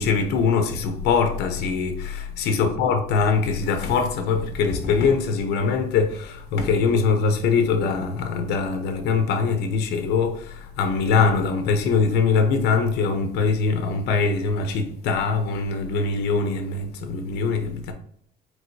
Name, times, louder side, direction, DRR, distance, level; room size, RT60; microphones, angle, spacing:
voice 1, 0.0-17.9, left 5 dB, 85° left, 0.7 m, -22 dB
4.7 x 3.9 x 2.7 m
cardioid pair, 110°, 17 cm